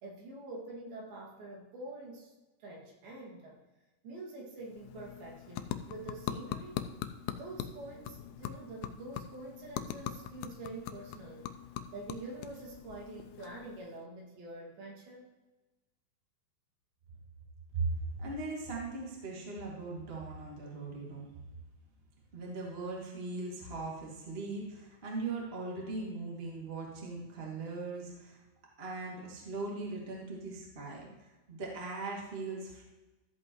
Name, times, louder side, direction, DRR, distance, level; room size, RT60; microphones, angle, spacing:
voice 1, 0.0-2.3 2.6-3.6 4.0-6.8 7.4-11.5 11.9-15.2, right 2 dB, 70° right, -3 dB, 3.9 m, -46 dB
sound 1, 4.6-14.0, left 11 dB, 85° left, 2.1 m, -42 dB
voice 2, 18.2-21.3 22.3-28.4 28.8-32.8, right 3 dB, 25° right, -3 dB, 1.5 m, -39 dB
14.0 x 8.0 x 3.0 m, 1.1 s
omnidirectional pair, 4.6 m